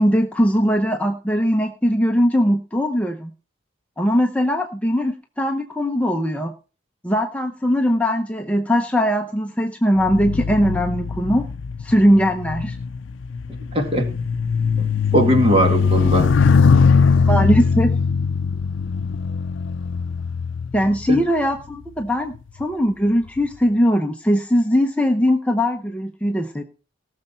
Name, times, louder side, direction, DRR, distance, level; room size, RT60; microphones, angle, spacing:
voice 1, 0.0-3.3 4.0-6.5 7.0-11.4 11.8-12.8 17.3-17.9 20.7-22.3 22.6-26.6, equal, 5° left, 3 dB, 0.7 m, -20 dB
sound 1, 10.0-21.6 22.3-22.6, left 5 dB, 80° left, 0.5 m, -20 dB
voice 2, 13.7-14.1 14.8-16.3 21.1-21.2, equal, 30° right, 4 dB, 2.1 m, -19 dB
18.0 x 6.7 x 4.3 m, 0.35 s
head